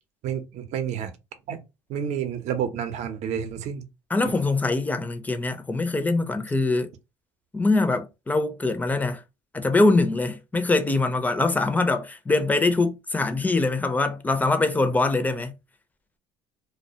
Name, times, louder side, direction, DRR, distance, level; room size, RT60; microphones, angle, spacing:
voice 1, 0.2-1.1 1.5-1.6 1.9-3.9 4.2-4.3, right 8 dB, 55° right, 0.7 m, -29 dB
voice 2, 4.1-6.9 7.5-9.2 9.5-15.5, left 3 dB, 10° left, 0.5 m, -23 dB
2.3 x 2.2 x 2.8 m
supercardioid pair, 80°, 14 cm